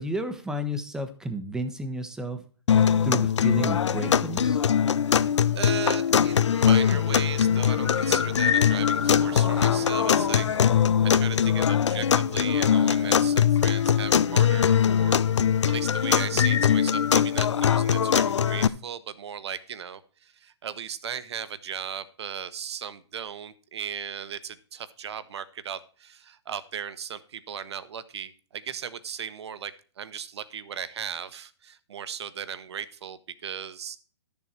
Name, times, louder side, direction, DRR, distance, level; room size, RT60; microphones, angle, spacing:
voice 1, 0.0-2.4 3.0-4.6, right 1 dB, 5° right, 8 dB, 1.1 m, -32 dB
sound 1, 2.7-18.7, left 8 dB, 75° left, 0.7 m, -22 dB
Motorcycle, 4.2-15.7, right 8 dB, 30° right, 1.4 m, -46 dB
sound 2, 5.1-15.0, left 7 dB, 15° left, 1.8 m, -50 dB
voice 2, 5.5-10.5 10.7-34.0, right 8 dB, 65° right, 15 dB, 1.2 m, -37 dB
12.5 x 7.1 x 4.4 m, 0.41 s
hypercardioid pair, 140°, 15 cm